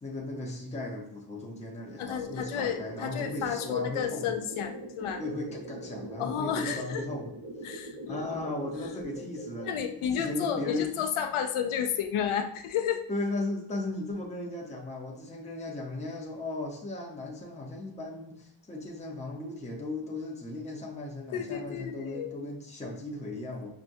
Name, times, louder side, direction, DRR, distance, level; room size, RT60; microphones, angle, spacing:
voice 1, 0.0-4.3 5.2-7.3 8.1-11.0 13.1-23.7, left 2 dB, 15° left, -2 dB, 0.7 m, -36 dB
voice 2, 2.0-5.2 6.2-7.0 7.6-8.4 9.6-13.0 21.3-22.3, left 8 dB, 85° left, 7 dB, 0.6 m, -32 dB
sound 1, 2.2-9.8, right 1 dB, 70° right, 1.1 m, -42 dB
5.9 x 2.2 x 2.6 m, 0.75 s
wide cardioid pair, 130°, 48 cm